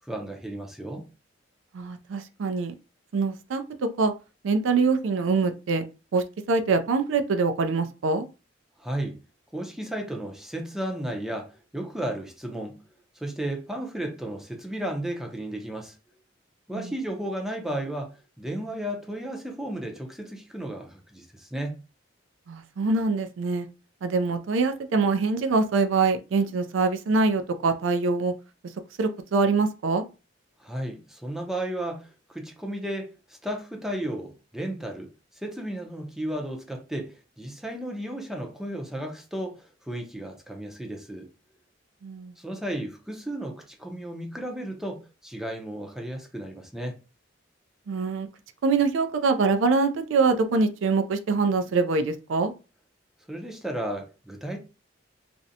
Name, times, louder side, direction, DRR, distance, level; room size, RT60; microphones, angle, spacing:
voice 1, 0.1-1.1 8.8-9.2 9.5-12.8 13.2-15.9 16.7-21.8 30.6-35.1 35.4-41.3 42.4-47.0 53.3-54.6, right 1 dB, ahead, 0.5 m, -34 dB
voice 2, 1.7-2.7 3.1-4.1 4.4-5.8 6.1-8.2 16.7-16.9 22.5-23.7 24.0-28.3 29.0-30.0 42.0-42.3 47.9-48.3 48.6-52.5, right 4 dB, 80° right, 0.4 m, -24 dB
2.5 x 2.1 x 2.7 m
head